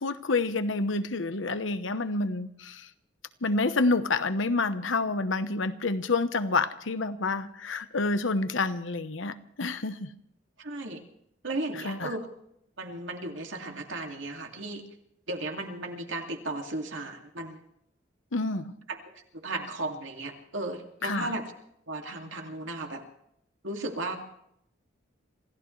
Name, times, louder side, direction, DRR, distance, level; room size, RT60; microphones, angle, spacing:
voice 1, 0.0-2.9 3.4-10.1 11.8-12.1 18.3-18.7 21.0-21.3, left 3 dB, 85° left, 1.0 m, -28 dB
voice 2, 10.6-11.0 11.4-12.3 12.8-14.8 15.3-17.6 18.9-21.4 21.9-23.0 23.6-24.2, right 2 dB, 80° right, 2.4 m, -35 dB
27.0 x 15.5 x 3.3 m
head